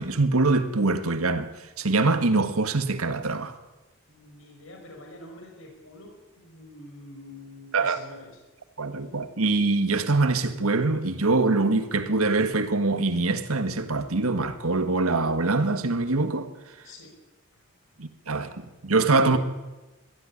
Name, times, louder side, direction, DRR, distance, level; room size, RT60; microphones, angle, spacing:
voice 1, 0.0-1.5 1.8-3.6 7.7-8.0 8.8-16.5 18.0-19.4, right 3 dB, 90° right, 1.7 m, -24 dB
voice 2, 4.1-8.4 16.8-17.1 17.5-17.6 19.2-19.4, left 1 dB, 65° left, 5.7 m, -46 dB
21.0 x 13.5 x 9.9 m
head